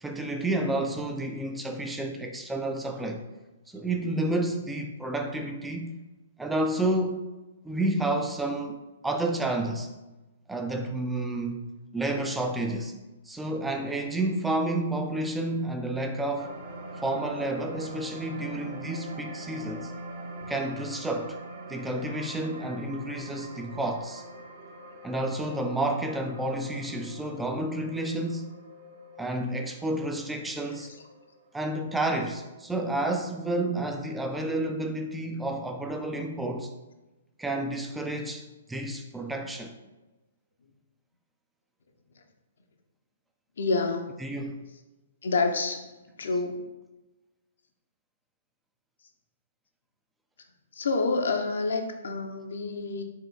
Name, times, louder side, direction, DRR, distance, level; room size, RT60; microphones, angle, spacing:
voice 1, 0.0-3.2 3.7-5.9 6.4-7.2 7.6-9.9 10.5-12.9 13.3-16.5 17.0-19.9 20.5-21.4 21.7-24.2 25.0-28.5 29.2-30.9 31.5-36.7 37.4-39.8 44.2-44.6, right 1 dB, 5° right, 4 dB, 0.3 m, -30 dB
sound 1, 16.4-32.8 33.3-33.4, right 1 dB, 45° right, 0.8 m, -44 dB
voice 2, 43.6-44.1 45.2-45.9 46.2-46.7 50.7-53.0, left 3 dB, 60° left, 5 dB, 0.6 m, -28 dB
4.6 x 3.1 x 3.4 m, 1.1 s
figure-of-eight pair, 120°, 0 cm